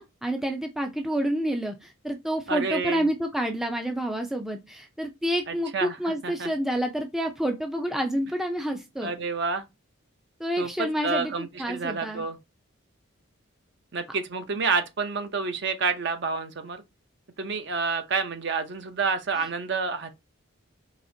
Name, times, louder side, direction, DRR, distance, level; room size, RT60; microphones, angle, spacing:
voice 1, 0.0-9.1 10.4-12.3, right 1 dB, ahead, 0.4 m, -29 dB
voice 2, 2.5-3.0 5.5-6.5 9.0-9.6 10.6-12.4 13.9-16.8 17.4-20.1, right 4 dB, 55° right, 0.6 m, -29 dB
4.9 x 2.8 x 2.6 m
head